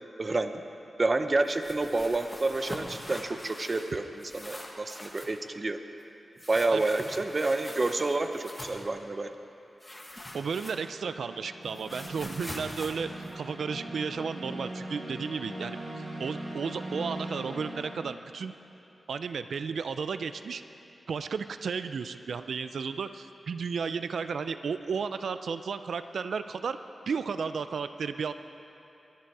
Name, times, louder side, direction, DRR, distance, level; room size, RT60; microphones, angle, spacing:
voice 1, 0.2-0.6 1.0-5.8 6.5-9.3, right 2 dB, 30° right, 8 dB, 0.6 m, -29 dB
sound 1, 1.4-3.9 4.2-5.4 6.4-8.9 9.8-11.1 11.4-14.0, left 1 dB, 10° left, 1.4 m, -43 dB
sound 2, 3.9-4.2 10.1-18.0, right 1 dB, 60° right, 3.1 m, -41 dB
voice 2, 10.3-13.1 13.3-15.8 16.2-18.5 19.1-20.6 21.1-26.8 27.1-28.3, right 5 dB, 85° right, 11 dB, 0.4 m, -33 dB
21.5 x 10.5 x 4.7 m, 2.9 s
wide cardioid pair, 170°, 0 cm